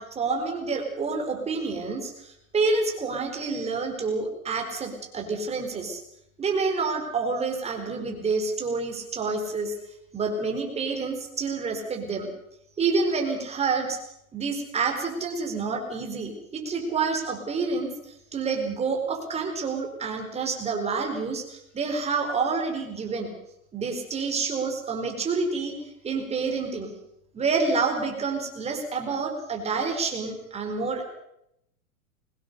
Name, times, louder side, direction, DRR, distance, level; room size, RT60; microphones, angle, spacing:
voice 1, 0.0-6.0 6.4-9.7 10.1-12.3 12.8-14.0 14.3-23.3 23.7-25.7 26.0-26.9 27.3-31.0, right 4 dB, 15° right, 3 dB, 4.4 m, -28 dB
22.5 x 19.0 x 6.8 m, 0.79 s
supercardioid pair, 150°, 43 cm